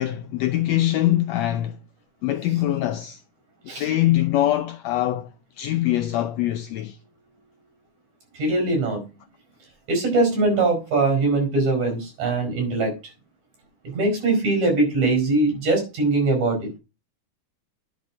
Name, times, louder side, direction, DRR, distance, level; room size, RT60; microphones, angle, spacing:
voice 1, 0.0-1.8 2.2-3.2 3.8-5.3 5.6-7.0, left 14 dB, 80° left, 1.6 m, -23 dB
voice 2, 8.4-9.0 9.9-12.9 13.9-16.7, right 2 dB, 65° right, 6.4 m, -21 dB
10.0 x 5.0 x 6.3 m
omnidirectional pair, 3.6 m